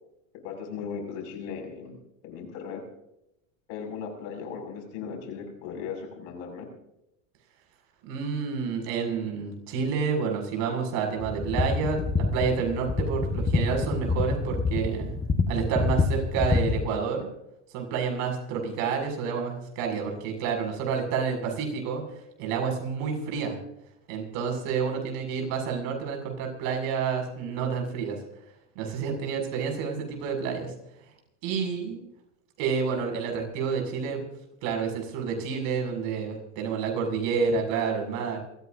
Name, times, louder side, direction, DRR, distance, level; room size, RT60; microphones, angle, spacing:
voice 1, 0.4-2.0 2.2-2.8 3.7-6.7, left 6 dB, 65° left, 2 dB, 6.9 m, -37 dB
voice 2, 8.0-15.2 15.5-17.3 17.7-22.0 22.4-23.6 24.1-28.2 28.8-30.7 31.4-32.0 32.6-34.2 34.6-38.4, right 6 dB, 60° right, 2 dB, 7.2 m, -29 dB
sound 1, 11.2-16.9, left 4 dB, 15° left, 1.7 m, -27 dB
28.5 x 15.5 x 2.8 m, 0.84 s
supercardioid pair, 120°, 40 cm